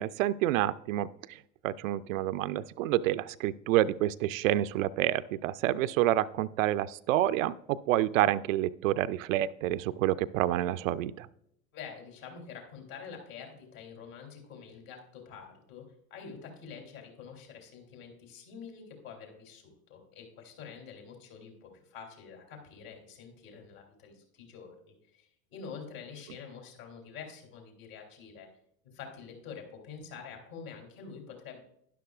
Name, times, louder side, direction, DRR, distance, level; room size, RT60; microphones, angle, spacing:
voice 1, 0.0-11.3, right 13 dB, 60° right, 14 dB, 0.5 m, -28 dB
voice 2, 11.7-15.8 16.1-28.5 28.8-31.6, left 6 dB, 60° left, 2 dB, 3.1 m, -47 dB
12.0 x 11.0 x 2.4 m, 0.73 s
figure-of-eight pair, 80°, 45 cm